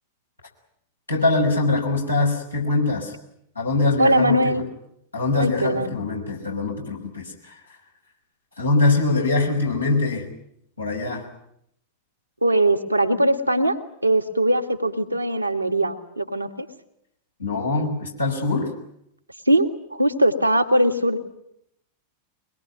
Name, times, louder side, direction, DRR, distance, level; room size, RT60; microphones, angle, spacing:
voice 1, 1.1-3.1 3.6-4.6 5.1-7.6 8.6-10.3 10.8-11.3 17.4-18.7, left 3 dB, 85° left, -1 dB, 5.8 m, -23 dB
voice 2, 4.0-4.7 5.4-6.0 12.4-13.8 14.0-16.7 19.5-21.2, right 1 dB, 85° right, 3 dB, 1.9 m, -20 dB
23.5 x 21.5 x 9.4 m, 0.75 s
figure-of-eight pair, 90°, 0 cm